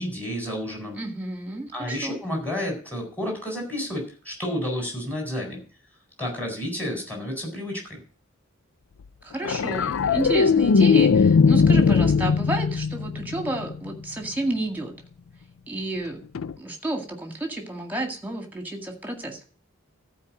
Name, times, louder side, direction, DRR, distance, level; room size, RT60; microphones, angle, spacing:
voice 1, 0.0-1.0 1.7-5.6 6.2-8.0, equal, 10° left, 0 dB, 4.4 m, -31 dB
voice 2, 1.0-2.2 9.2-14.9 15.7-16.2 16.6-19.4, right 2 dB, 10° right, 4 dB, 2.0 m, -31 dB
sound 1, 9.4-13.9 16.3-16.5, left 5 dB, 75° left, 0.4 m, -19 dB
14.0 x 4.8 x 7.4 m, 0.39 s
head